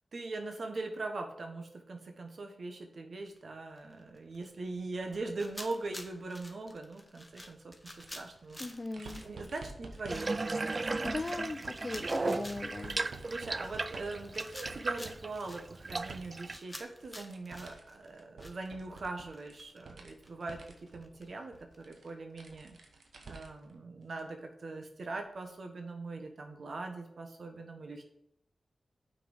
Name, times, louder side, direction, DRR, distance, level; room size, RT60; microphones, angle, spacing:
voice 1, 0.1-11.2 13.2-22.8 23.2-28.0, right 3 dB, 70° right, 4 dB, 1.3 m, -41 dB
sound 1, 3.2-3.4 3.8-4.4 5.1-19.1 19.3-21.9, left 1 dB, 10° left, 1.2 m, -50 dB
sound 2, 7.9-16.4 16.7-23.7 24.1-24.2 25.4-25.5, right 3 dB, 85° right, 1.0 m, -51 dB
voice 2, 8.6-9.2 11.0-13.0, left 2 dB, 40° left, 9 dB, 0.7 m, -38 dB
Water tap faucet / Bathtub (filling or washing), 10.1-16.6, right 3 dB, 45° right, 0.3 m, -36 dB
6.0 x 4.9 x 6.5 m, 0.76 s
cardioid pair, 45°, 0 cm